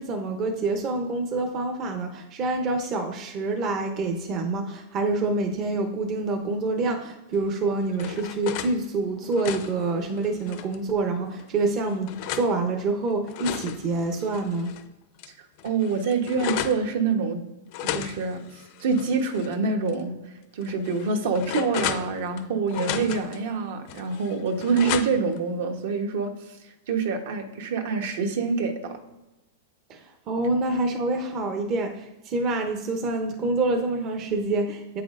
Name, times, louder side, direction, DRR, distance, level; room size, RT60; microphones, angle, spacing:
voice 1, 0.0-14.7 29.9-35.0, right 3 dB, 30° right, 4 dB, 0.7 m, -27 dB
sound 1, 7.4-8.7 9.2-10.8 11.4-12.5 13.1-14.8 15.2-15.3 15.6-16.8 17.7-19.5 19.9-20.0 20.6-22.4 22.7-23.4 23.9-25.4, left 10 dB, 45° left, 0.5 m, -34 dB
voice 2, 15.4-17.4 17.9-29.0, right 4 dB, 60° right, 4 dB, 1.1 m, -26 dB
8.1 x 5.8 x 2.5 m, 1.0 s
supercardioid pair, 160°, 0 cm